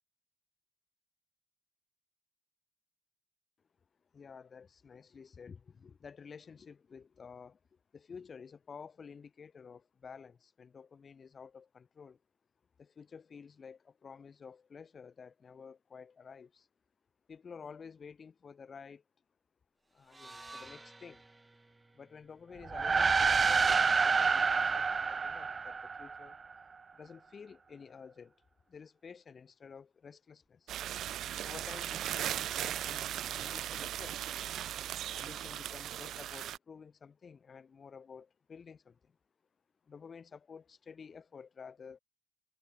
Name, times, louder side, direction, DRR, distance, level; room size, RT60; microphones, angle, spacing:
voice 1, 4.1-7.6 7.9-12.2 12.8-16.7 17.3-19.0 19.9-21.3 21.9-26.4 26.9-28.4 28.7-30.7 31.4-34.2 35.1-39.2 39.8-42.0, left 6 dB, 45° left, 3.7 m, -51 dB
sound 1, 20.0-24.2, right 2 dB, 20° right, 2.2 m, -55 dB
sound 2, 22.6-26.3, right 5 dB, 35° right, 0.3 m, -28 dB
sound 3, 30.7-36.6, right 11 dB, 75° right, 1.2 m, -38 dB
cardioid pair, 90°, 0 cm